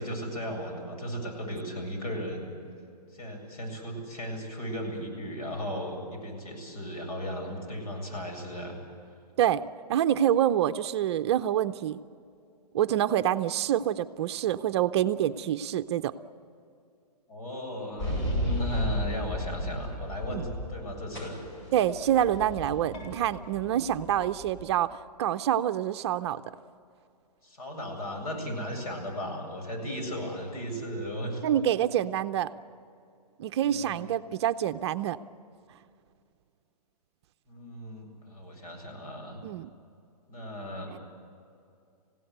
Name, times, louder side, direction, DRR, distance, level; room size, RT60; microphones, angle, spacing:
voice 1, 0.0-2.5 3.1-8.8 17.3-21.4 27.4-31.4 33.6-34.1 37.5-39.4 40.3-40.9, equal, 65° left, 3 dB, 7.7 m, -36 dB
voice 2, 9.9-12.0 12.7-16.1 20.3-20.5 21.7-26.4 31.4-32.5 33.4-35.2 39.4-39.7 40.9-41.0, right 11 dB, 40° right, 10 dB, 0.6 m, -27 dB
sound 1, 18.0-20.8 21.1-24.6, equal, 45° left, 7.2 m, -34 dB
27.0 x 17.0 x 8.1 m, 2.4 s
hypercardioid pair, 145°, 21 cm